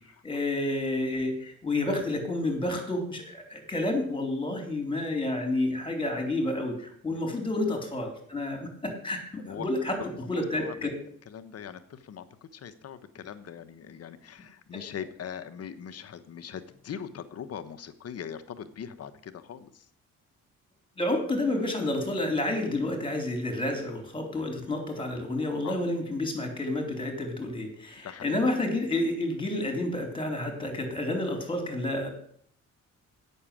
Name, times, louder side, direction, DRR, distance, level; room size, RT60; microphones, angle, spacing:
voice 1, 0.2-10.0 10.3-10.9 21.0-32.1, left 1 dB, 15° left, 4 dB, 3.7 m, -30 dB
voice 2, 10.0-10.9 11.3-12.2 12.5-19.9 25.6-25.8 28.0-28.4, left 8 dB, 55° left, 9 dB, 1.2 m, -41 dB
8.8 x 6.8 x 8.6 m, 0.62 s
cardioid pair, 90°, 30 cm